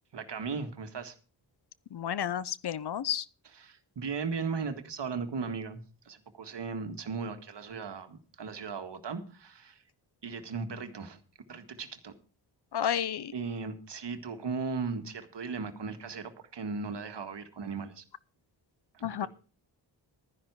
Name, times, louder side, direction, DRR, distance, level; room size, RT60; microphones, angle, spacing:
voice 1, 0.1-1.1 3.5-5.8 6.1-9.8 10.2-11.2 11.5-12.1 13.3-18.0 18.9-19.3, right 5 dB, 60° right, 1.8 m, -37 dB
voice 2, 1.9-3.3 12.7-13.3 19.0-19.3, left 9 dB, 55° left, 0.7 m, -31 dB
12.5 x 10.5 x 4.7 m
cardioid pair, 70°, 48 cm